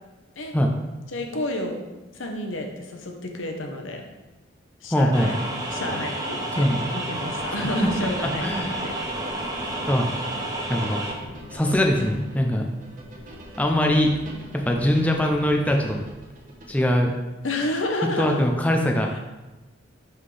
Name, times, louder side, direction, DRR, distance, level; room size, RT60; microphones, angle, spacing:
voice 1, 1.1-1.8 2.1-4.0 4.8-5.4 5.7-8.9 17.4-18.4 19.1-19.2, left 1 dB, 90° left, 2 dB, 0.9 m, -30 dB
voice 2, 4.9-5.3 6.5-6.8 8.2-8.8 9.9-10.1 10.7-11.0 11.5-12.6 13.6-14.1 14.5-16.0 16.7-17.1 18.2-19.1, left 1 dB, 10° left, 1 dB, 0.5 m, -22 dB
sound 1, 5.1-11.1, right 1 dB, 20° right, 0.8 m, -30 dB
sound 2, 7.2-17.2, right 1 dB, 45° right, 1.0 m, -43 dB
5.7 x 5.6 x 3.3 m, 1.1 s
head